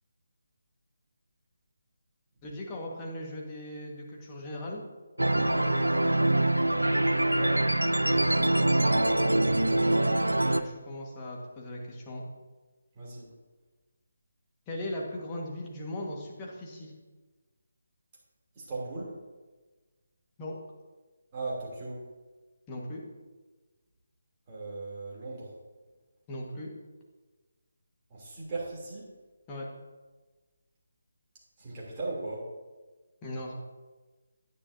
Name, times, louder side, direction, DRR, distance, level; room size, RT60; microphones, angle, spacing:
voice 1, 2.4-4.8 5.3-6.1 9.7-12.2 14.7-16.9 20.4-20.5 22.7-23.0 26.3-26.7 29.5-29.7 33.2-33.5, left 1 dB, 20° left, -2 dB, 1.5 m, -39 dB
sound 1, 5.2-10.6, right 1 dB, 85° right, 0.4 m, -24 dB
voice 2, 7.3-7.6 8.0-8.6 12.9-13.3 18.5-19.2 21.3-22.0 24.5-25.5 28.1-29.1 31.6-32.5, right 2 dB, 25° right, -6 dB, 2.9 m, -38 dB
10.0 x 9.6 x 2.7 m, 1.3 s
figure-of-eight pair, 150°, 0 cm